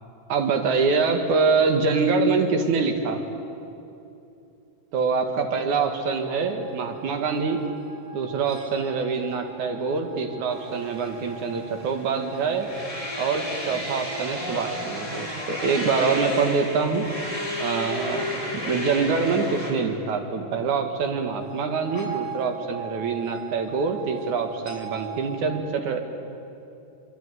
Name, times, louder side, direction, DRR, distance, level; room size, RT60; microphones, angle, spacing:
voice 1, 0.3-3.2 4.9-7.6 8.1-12.7 13.2-17.1 17.6-18.3 18.5-26.0, right 4 dB, 65° right, 5 dB, 3.3 m, -25 dB
Stressed feeling, 5.8-15.7 21.1-25.5, right 7 dB, 30° left, 6.7 m, -41 dB
sound 1, 10.5-19.7, left 1 dB, 10° left, 6.0 m, -32 dB
25.0 x 24.0 x 9.5 m, 2.8 s
omnidirectional pair, 3.9 m